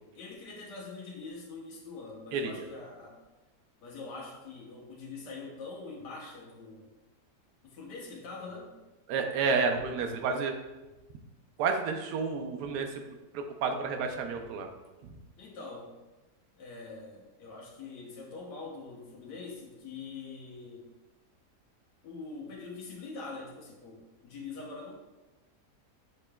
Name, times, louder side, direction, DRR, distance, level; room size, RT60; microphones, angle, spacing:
voice 1, 0.1-3.2 3.8-6.9 7.6-8.8 15.4-15.9 16.6-20.9 22.0-25.0, left 3 dB, 85° left, -3 dB, 1.4 m, -44 dB
voice 2, 2.3-2.7 9.1-10.5 11.6-13.0 13.3-14.7, right 5 dB, 80° right, 5 dB, 1.1 m, -30 dB
6.6 x 3.3 x 2.2 m, 1.1 s
omnidirectional pair, 1.8 m